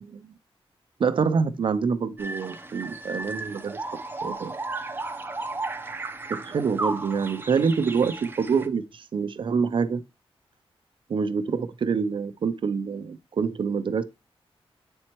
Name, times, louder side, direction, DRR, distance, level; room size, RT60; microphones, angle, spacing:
voice 1, 0.1-0.4 1.0-3.8 4.2-4.5 6.3-10.0 11.1-14.0, right 5 dB, 55° right, 0.6 m, -26 dB
sound 1, 2.2-8.7, right 3 dB, 20° right, 0.7 m, -34 dB
8.3 x 4.4 x 3.0 m
wide cardioid pair, 140°, 10 cm